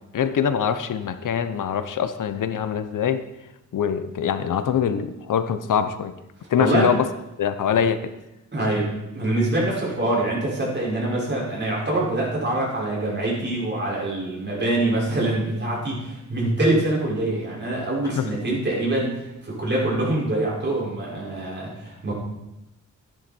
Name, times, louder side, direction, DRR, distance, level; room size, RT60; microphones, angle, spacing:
voice 1, 0.1-3.2 3.7-6.1 6.5-7.1 7.4-8.0 18.1-18.3, left 8 dB, 85° left, 10 dB, 0.9 m, -23 dB
voice 2, 6.6-6.9 8.5-22.1, right 2 dB, 35° right, -5 dB, 5.8 m, -24 dB
14.0 x 10.5 x 4.5 m, 0.90 s
wide cardioid pair, 115°, 31 cm